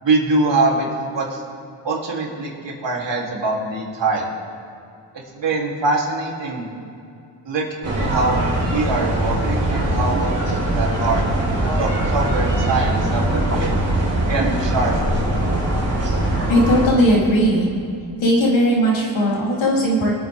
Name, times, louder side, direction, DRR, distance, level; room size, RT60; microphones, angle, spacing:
voice 1, 0.0-1.4 1.8-4.3 5.3-6.7 7.4-11.2 11.8-13.7 14.2-15.2, right 3 dB, 65° right, -3 dB, 3.4 m, -23 dB
sound 1, 7.8-16.9, right 1 dB, 30° right, 3.8 m, -21 dB
voice 2, 16.5-17.7 18.2-20.1, equal, 70° left, -4 dB, 3.9 m, -17 dB
23.5 x 9.0 x 3.7 m, 2.6 s
cardioid pair, 70°, 47 cm